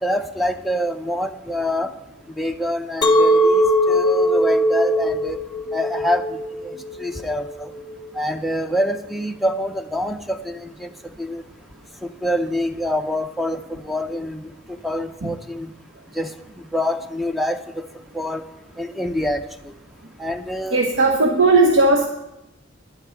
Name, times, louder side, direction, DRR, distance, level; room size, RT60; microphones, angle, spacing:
voice 1, 0.0-1.9 2.4-5.4 5.7-7.7 8.1-10.9 11.2-11.4 12.0-14.5 14.8-15.7 16.1-16.3 16.7-17.6 18.1-18.4 18.8-19.4 20.2-20.8, left 1 dB, ahead, 8 dB, 0.5 m, -26 dB
Chink clink, 3.0-8.2, equal, 20° left, 0.8 m, -20 dB
voice 2, 20.7-22.1, right 3 dB, 80° right, 2 dB, 0.9 m, -16 dB
10.0 x 8.4 x 5.8 m, 0.93 s
head